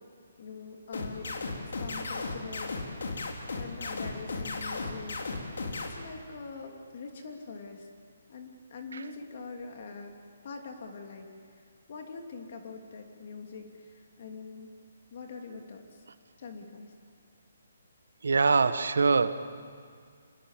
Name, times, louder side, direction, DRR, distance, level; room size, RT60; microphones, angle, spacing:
voice 1, 0.4-1.4 1.6-3.1 3.5-5.4 5.8-7.9 8.3-10.2 10.4-14.7 15.1-16.1 16.4-16.9, left 4 dB, 45° left, 3 dB, 2.8 m, -44 dB
sound 1, 0.9-5.9, left 3 dB, 75° left, 3.7 m, -35 dB
voice 2, 18.2-19.3, right 4 dB, 80° right, 12 dB, 1.4 m, -23 dB
26.0 x 22.0 x 7.5 m, 2.1 s
hypercardioid pair, 170°, 0 cm